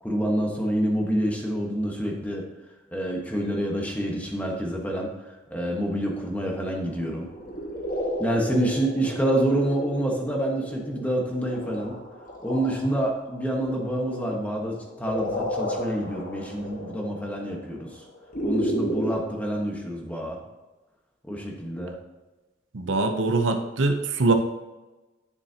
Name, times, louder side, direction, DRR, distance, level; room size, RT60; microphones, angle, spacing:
voice 1, 0.0-2.5 2.9-7.3 8.2-12.0 12.4-18.0 18.4-20.4 21.2-22.0, right 1 dB, 10° left, 0 dB, 1.2 m, -27 dB
sound 1, 7.1-19.1, equal, 45° left, 1.4 m, -33 dB
voice 2, 22.7-24.3, right 3 dB, 75° right, 6 dB, 0.7 m, -23 dB
9.4 x 7.2 x 2.8 m, 1.1 s
head